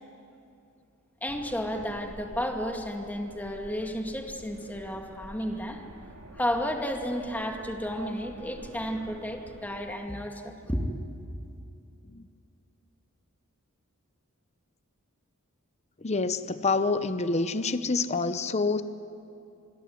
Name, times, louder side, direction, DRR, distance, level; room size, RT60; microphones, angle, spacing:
voice 1, 1.2-5.8 6.3-10.8, equal, 10° left, 3 dB, 2.2 m, -32 dB
sound 1, 1.3-9.9, right 1 dB, 75° right, 2.3 m, -49 dB
voice 2, 16.0-18.8, left 3 dB, 30° left, 12 dB, 0.8 m, -27 dB
26.5 x 21.5 x 9.4 m, 2.6 s
head